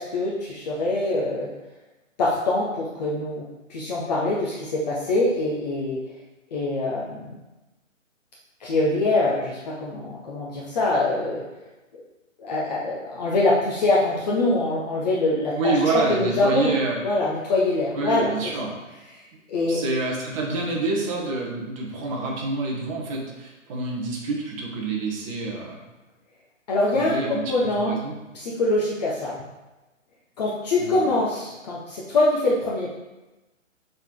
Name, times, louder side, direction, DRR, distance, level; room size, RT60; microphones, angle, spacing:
voice 1, 0.0-1.5 2.2-3.4 3.7-6.0 6.5-7.3 8.6-11.4 12.4-16.7 17.0-18.3 19.5-19.8 26.7-27.9 28.3-29.3 30.4-32.9, left 2 dB, 30° left, -4 dB, 0.9 m, -24 dB
voice 2, 15.6-17.0 17.9-18.8 19.6-25.8 26.9-27.4 27.8-28.2 30.8-30.9, right 3 dB, 25° right, -3 dB, 1.1 m, -27 dB
7.0 x 3.9 x 3.8 m, 1.1 s
hypercardioid pair, 150°, 39 cm